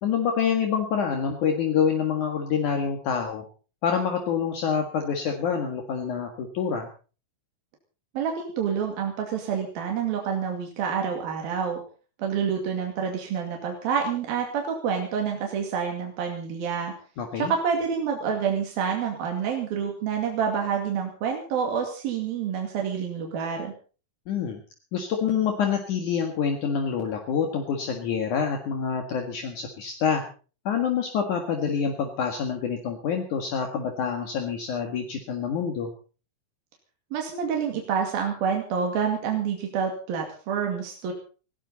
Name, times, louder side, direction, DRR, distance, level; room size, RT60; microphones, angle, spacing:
voice 1, 0.0-3.4 3.8-6.9 17.2-17.5 24.3-24.6 24.9-30.2 30.7-35.9, left 7 dB, 60° left, 3 dB, 3.1 m, -26 dB
voice 2, 8.1-11.8 12.2-16.9 17.4-23.7 37.1-41.1, right 7 dB, 80° right, 1 dB, 4.2 m, -28 dB
20.5 x 16.5 x 4.1 m, 0.38 s
omnidirectional pair, 4.1 m